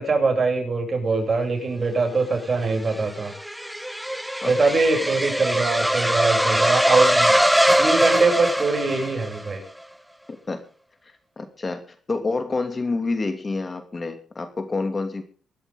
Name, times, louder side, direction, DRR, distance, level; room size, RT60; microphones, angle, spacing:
voice 1, 0.0-3.3 4.4-7.3 7.8-9.6, right 3 dB, 35° right, 3 dB, 7.8 m, -22 dB
sound 1, 2.4-9.5, equal, 5° right, 1.3 m, -22 dB
voice 2, 11.0-11.8 12.1-15.2, left 3 dB, 30° left, 7 dB, 2.7 m, -28 dB
23.0 x 12.5 x 3.8 m, 0.41 s
cardioid pair, 85°, 0 cm